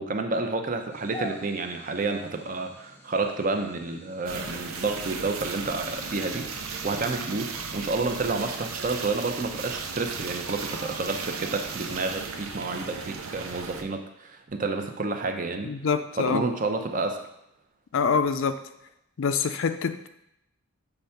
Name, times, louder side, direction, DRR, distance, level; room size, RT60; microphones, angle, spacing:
voice 1, 0.0-15.7 16.2-17.2, right 3 dB, 35° right, 5 dB, 0.6 m, -30 dB
sound 1, 0.9-7.1, left 2 dB, 10° left, 0.8 m, -46 dB
sound 2, 4.2-13.8, right 5 dB, 75° right, 0.6 m, -36 dB
voice 2, 15.6-16.4 17.9-18.6 19.2-20.1, left 5 dB, 60° left, 9 dB, 0.4 m, -25 dB
6.8 x 3.3 x 5.7 m, 0.81 s
head